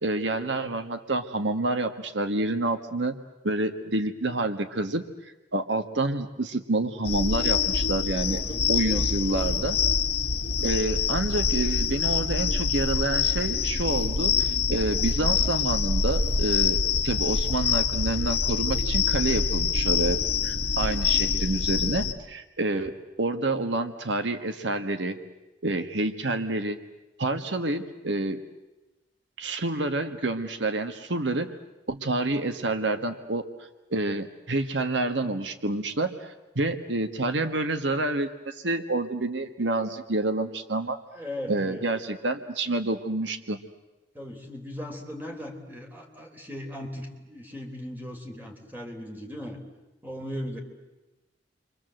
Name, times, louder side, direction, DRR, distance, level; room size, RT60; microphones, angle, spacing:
voice 1, 0.0-3.2 3.4-5.0 5.5-8.4 8.7-9.8 10.6-25.2 25.6-26.8 27.2-28.4 29.4-31.6 31.9-41.0 41.5-43.6, right 2 dB, 75° right, 8 dB, 1.5 m, -28 dB
sound 1, 7.0-22.1, left 5 dB, 60° left, 1.5 m, -25 dB
voice 2, 8.1-9.5 41.1-41.9 44.1-49.6 50.0-50.6, equal, 10° right, 2 dB, 3.9 m, -38 dB
29.5 x 24.5 x 7.8 m, 1.1 s
head